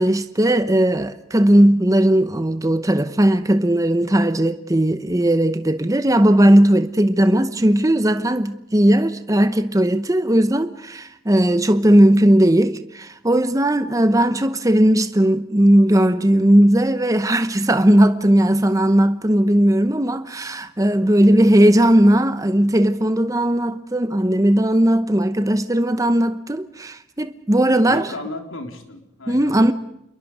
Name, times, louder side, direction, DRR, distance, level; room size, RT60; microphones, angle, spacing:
voice 1, 0.0-28.0 29.3-29.7, right 1 dB, 15° right, 0.9 m, -17 dB
voice 2, 27.8-29.7, left 2 dB, 90° left, 4.1 m, -34 dB
28.0 x 22.5 x 5.0 m
head